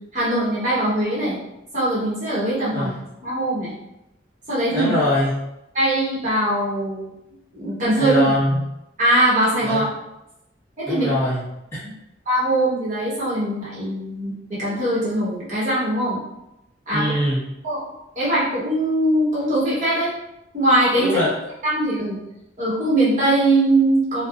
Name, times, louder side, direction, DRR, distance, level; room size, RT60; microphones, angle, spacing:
voice 1, 0.1-1.4 1.7-2.9 3.2-3.7 4.5-4.9 5.7-7.1 7.5-8.2 9.0-9.8 10.8-11.1 12.3-16.2 16.9-17.0 17.6-17.8 18.2-20.1 20.5-21.1 21.6-22.2 22.6-24.3, right 1 dB, 45° right, -9 dB, 1.0 m, -21 dB
voice 2, 2.7-3.0 4.7-5.4 8.0-8.6 9.6-9.9 10.9-11.8 16.9-17.4 21.0-21.3, left 1 dB, 15° left, -11 dB, 1.3 m, -22 dB
3.3 x 2.0 x 2.5 m, 0.88 s
head